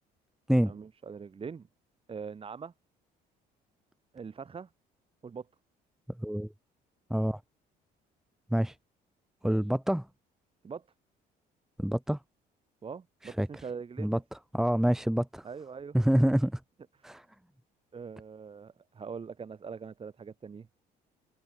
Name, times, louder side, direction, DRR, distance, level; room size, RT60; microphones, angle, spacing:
voice 1, 0.6-1.7 2.1-2.7 4.1-4.7 5.2-5.5 9.4-9.6 10.6-10.8 12.8-14.2 15.4-16.0 16.2-16.3 17.0-17.1 17.9-20.7, right 6 dB, 35° right, 7.9 m, -42 dB
voice 2, 9.4-10.0 11.8-12.2 13.4-13.5 14.0-14.2 14.5-15.4 15.9-16.5 17.0-17.2, equal, 5° right, 2.1 m, -26 dB
open air
cardioid pair, 110°, 17 cm